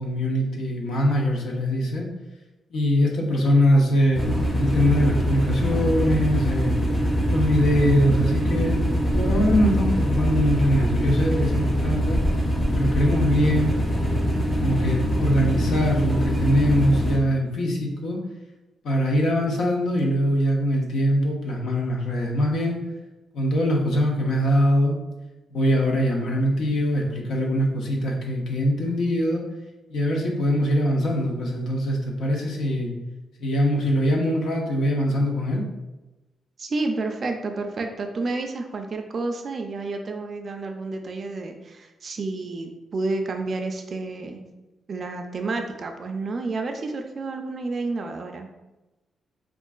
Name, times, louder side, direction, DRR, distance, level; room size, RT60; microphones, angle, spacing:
voice 1, 0.0-2.1 2.7-6.7 7.3-8.8 9.1-12.2 12.7-13.8 14.6-18.2 18.8-22.8 23.3-25.0 25.5-29.4 29.9-32.9 33.4-35.7, equal, 75° left, 0 dB, 0.7 m, -22 dB
sound 1, 4.1-17.2, equal, 30° left, 1.2 m, -23 dB
voice 2, 36.6-44.4 44.9-48.5, right 3 dB, 45° right, 4 dB, 0.4 m, -30 dB
4.4 x 2.4 x 2.3 m, 1.0 s
cardioid pair, 125°, 0 cm